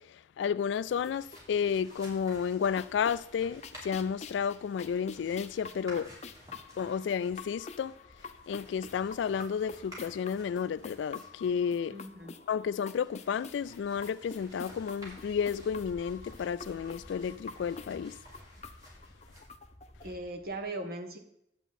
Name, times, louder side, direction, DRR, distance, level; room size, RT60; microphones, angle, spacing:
voice 1, 0.0-6.1 6.8-7.9 8.5-12.0 12.5-18.2, left 7 dB, 85° left, 0.3 m, -32 dB
sound 1, 0.7-2.2 2.5-20.1, left 4 dB, 35° left, 0.6 m, -48 dB
sound 2, 0.7-20.6, equal, 20° right, 3.7 m, -53 dB
voice 2, 11.9-12.3 20.0-21.2, right 2 dB, 55° right, 1.4 m, -39 dB
11.0 x 8.0 x 4.2 m
head